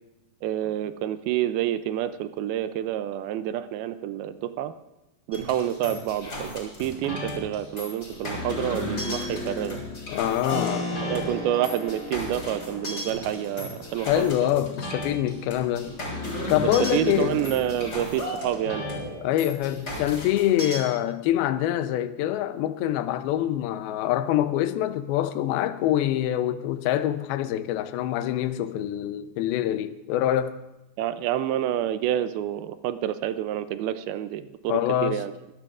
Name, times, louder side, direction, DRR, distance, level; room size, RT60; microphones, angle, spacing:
voice 1, 0.4-4.7 5.3-9.8 11.0-14.5 16.9-18.8 31.0-35.3, right 11 dB, 80° right, 2.3 m, -28 dB
sound 1, 5.3-20.8, left 1 dB, 25° left, 3.6 m, -34 dB
voice 2, 10.1-10.9 14.1-15.9 16.5-17.4 19.2-30.6 34.7-35.2, left 12 dB, 80° left, 2.5 m, -25 dB
Keyboard (musical), 10.5-20.9, left 2 dB, 50° left, 5.6 m, -40 dB
23.0 x 15.0 x 2.4 m
omnidirectional pair, 4.6 m